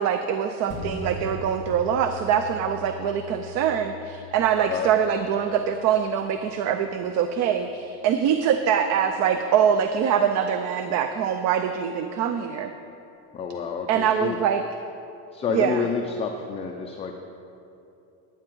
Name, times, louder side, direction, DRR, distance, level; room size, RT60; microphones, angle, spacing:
voice 1, 0.0-12.7 13.9-14.6 15.5-15.8, right 8 dB, 45° right, 8 dB, 0.5 m, -24 dB
sound 1, 0.7-9.5 9.9-10.0, left 3 dB, 30° right, 2.8 m, -42 dB
voice 2, 13.3-14.4 15.3-17.1, left 6 dB, 15° left, 3 dB, 0.4 m, -29 dB
12.5 x 9.5 x 4.5 m, 2.8 s
cardioid pair, 150°, 37 cm